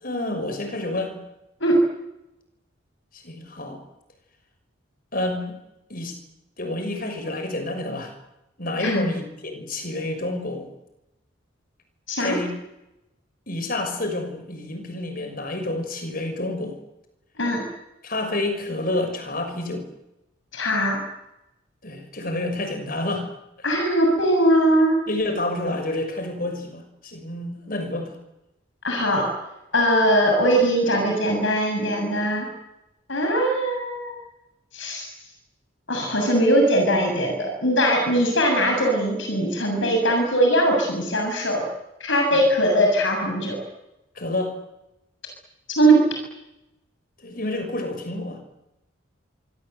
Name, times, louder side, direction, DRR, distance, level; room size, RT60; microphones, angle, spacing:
voice 1, 0.0-1.2 3.1-3.8 5.1-5.6 5.9-6.1 6.6-8.1 8.6-10.7 12.2-12.5 13.5-16.8 18.0-19.9 21.8-23.3 25.1-28.2 44.2-44.5 47.2-48.4, left 2 dB, 45° left, 7 dB, 6.2 m, -29 dB
voice 2, 20.5-21.0 23.6-25.0 28.8-29.2 29.7-32.5 33.1-34.2 34.7-35.1 35.9-41.6 42.0-43.6 45.8-46.0, right 1 dB, 65° left, 2 dB, 7.0 m, -20 dB
25.5 x 25.0 x 8.1 m, 0.90 s
head